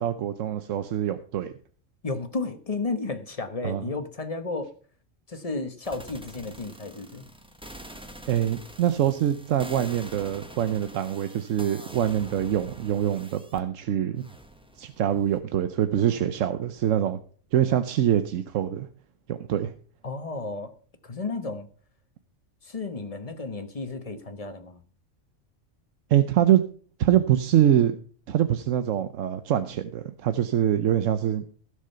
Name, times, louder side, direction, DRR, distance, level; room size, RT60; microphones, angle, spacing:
voice 1, 0.0-1.5 3.6-3.8 8.3-14.3 14.8-17.2 17.5-18.9 19.3-19.7 26.1-26.6 27.0-27.9 28.3-31.5, right 10 dB, 85° right, 11 dB, 1.1 m, -24 dB
voice 2, 2.0-4.7 5.3-7.3 20.0-20.7 21.0-21.7 22.6-24.8, left 3 dB, 30° left, 9 dB, 1.2 m, -33 dB
sound 1, 5.8-13.6 14.2-15.4, right 1 dB, 5° right, 1.1 m, -45 dB
15.5 x 6.5 x 5.6 m, 0.42 s
omnidirectional pair, 1.3 m